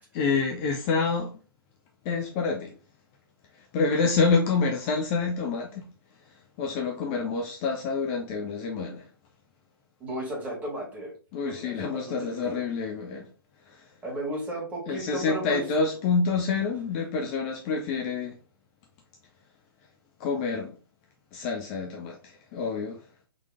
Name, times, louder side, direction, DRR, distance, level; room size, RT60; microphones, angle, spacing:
voice 1, 0.0-1.3 2.0-2.7 3.5-5.9 6.2-9.1 11.3-13.3 13.6-13.9 14.9-18.4 20.2-20.8 21.3-23.0, left 4 dB, 30° left, 0.6 m, -28 dB
voice 2, 10.0-11.1 11.4-12.6 14.0-15.6 16.6-16.7, right 1 dB, 15° right, 1.9 m, -35 dB
3.9 x 3.2 x 3.6 m
figure-of-eight pair, 120°, 12 cm